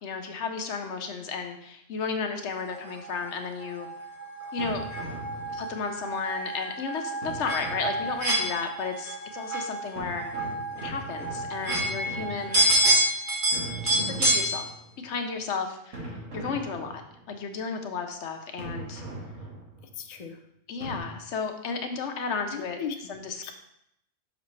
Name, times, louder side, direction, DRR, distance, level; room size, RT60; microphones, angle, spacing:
voice 1, 0.0-3.9 4.5-4.8 5.5-10.3 10.8-12.6 13.8-14.7 15.0-17.0 17.3-19.0 20.7-22.8 23.1-23.5, left 5 dB, 70° left, 5 dB, 1.0 m, -33 dB
sound 1, 2.7-14.5, right 1 dB, 40° right, 1.8 m, -28 dB
sound 2, 4.6-6.0 7.2-8.5 10.0-13.0 13.5-15.0 15.9-17.3 18.6-20.0 20.8-21.0, right 2 dB, 85° right, 1.8 m, -40 dB
voice 2, 14.0-14.3 19.9-20.4 22.5-23.1 23.4-23.5, left 6 dB, 45° left, 5 dB, 0.6 m, -37 dB
6.4 x 5.8 x 3.1 m, 0.76 s
omnidirectional pair, 1.3 m